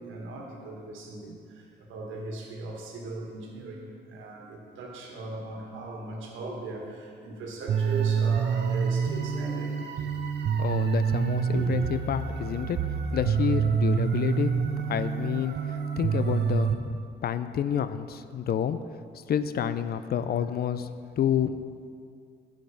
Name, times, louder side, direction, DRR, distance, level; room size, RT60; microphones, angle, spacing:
voice 1, 0.0-10.1 11.5-11.7, right 3 dB, 80° right, 0 dB, 1.6 m, -38 dB
sound 1, 7.7-16.8, right 6 dB, 60° right, 0.8 m, -27 dB
voice 2, 10.6-12.8 13.1-18.8 19.3-20.9 21.2-21.6, left 9 dB, 50° left, 12 dB, 0.5 m, -29 dB
8.3 x 6.5 x 5.8 m, 2.3 s
cardioid pair, 90°, 20 cm